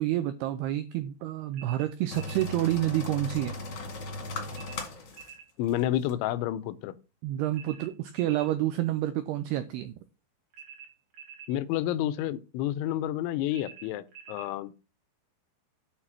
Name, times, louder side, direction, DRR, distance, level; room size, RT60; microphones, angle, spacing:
voice 1, 0.0-3.5 7.2-9.9, right 14 dB, 85° right, 2.3 m, -29 dB
sound 1, 1.5-2.5 4.5-5.5 7.5-8.5 10.5-11.6 13.5-14.5, right 7 dB, 60° right, 3.6 m, -48 dB
sound 2, 2.1-5.3 5.7-5.8 6.0-6.1, left 2 dB, 50° left, 1.5 m, -37 dB
voice 2, 5.6-7.0 11.5-14.7, left 12 dB, 85° left, 3.1 m, -30 dB
9.1 x 4.1 x 7.2 m
omnidirectional pair, 5.3 m